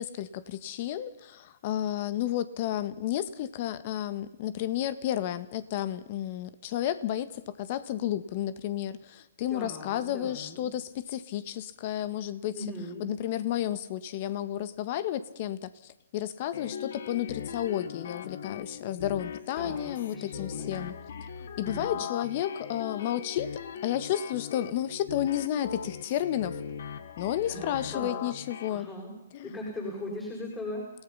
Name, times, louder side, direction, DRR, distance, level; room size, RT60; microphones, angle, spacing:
voice 1, 0.0-12.5 13.0-20.9 21.6-23.5 23.8-26.6 27.2-28.9 29.3-29.5, left 11 dB, 45° left, 14 dB, 1.7 m, -32 dB
voice 2, 9.5-10.7 12.5-13.0 19.6-20.7 21.6-22.0 27.4-28.2 28.7-30.9, left 1 dB, 15° left, -2 dB, 6.8 m, -39 dB
sound 1, 16.5-28.7, left 7 dB, 65° left, 1.8 m, -40 dB
29.5 x 18.0 x 5.8 m, 0.90 s
hypercardioid pair, 145°, 0 cm